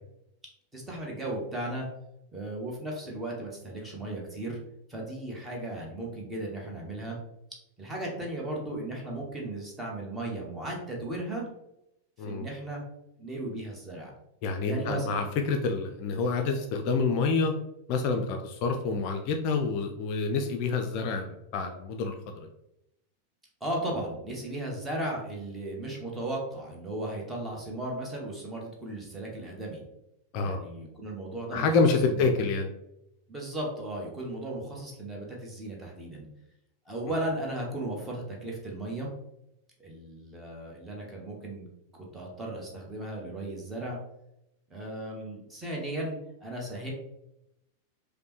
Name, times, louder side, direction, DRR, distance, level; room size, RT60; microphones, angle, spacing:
voice 1, 0.7-1.9 2.3-4.6 4.9-7.2 7.8-11.5 12.2-12.8 13.2-14.1 14.6-15.2 23.6-29.8 30.4-32.3 33.3-36.2 36.9-39.1 39.8-41.7 41.9-44.0 44.7-46.2 46.4-46.9, right 1 dB, 10° right, -2 dB, 1.1 m, -36 dB
voice 2, 14.4-17.5 17.9-22.1 22.4-22.5 30.3-30.6 31.5-32.7, left 4 dB, 45° left, 4 dB, 0.4 m, -27 dB
5.0 x 2.1 x 3.0 m, 0.84 s
figure-of-eight pair, 90°, 0 cm